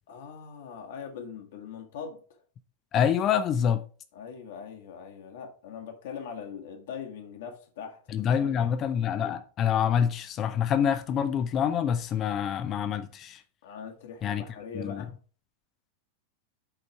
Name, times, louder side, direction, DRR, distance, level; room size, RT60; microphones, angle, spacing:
voice 1, 0.1-2.4 4.1-8.7 13.6-15.1, left 6 dB, 55° left, 1.7 m, -42 dB
voice 2, 2.9-3.8 8.1-13.4 14.2-14.4 14.7-15.0, left 8 dB, 30° left, 0.6 m, -26 dB
8.9 x 4.0 x 4.7 m
figure-of-eight pair, 90°, 0 cm